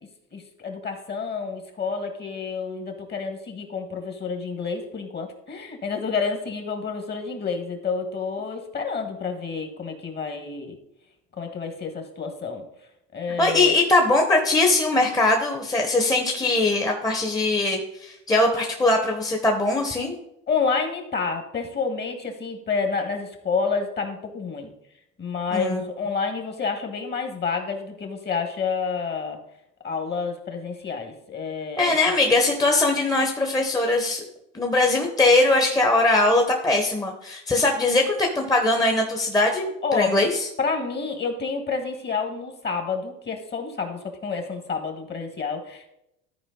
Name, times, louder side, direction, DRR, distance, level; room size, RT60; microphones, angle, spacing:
voice 1, 0.3-10.8 11.4-12.6 13.1-13.8 20.5-24.7 25.2-29.4 29.8-31.9 39.8-40.2 40.6-45.9, left 5 dB, 30° left, 5 dB, 1.7 m, -29 dB
voice 2, 13.4-20.2 25.5-25.8 31.8-34.2 34.5-40.5, left 2 dB, 10° left, 2 dB, 1.2 m, -21 dB
13.5 x 4.5 x 3.9 m, 0.81 s
supercardioid pair, 85°, 32 cm